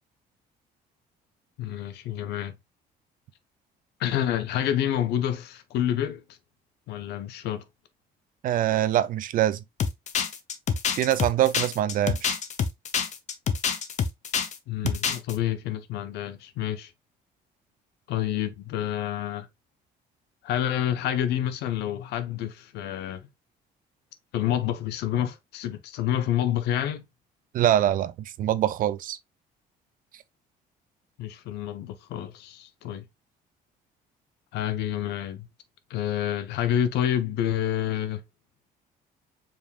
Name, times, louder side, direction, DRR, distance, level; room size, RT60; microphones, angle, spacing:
voice 1, 1.6-2.5 4.0-6.2 6.9-7.6 14.7-16.9 18.1-19.5 20.4-23.3 24.3-27.0 31.2-33.0 34.5-35.5 35.9-38.2, left 11 dB, 80° left, 0.7 m, -28 dB
voice 2, 8.4-9.6 10.9-12.4 27.5-29.2, right 12 dB, 55° right, 0.4 m, -24 dB
sound 1, 9.8-14.6 14.9-15.3, left 7 dB, 45° left, 0.7 m, -26 dB
5.1 x 3.5 x 2.3 m
cardioid pair, 110°, 17 cm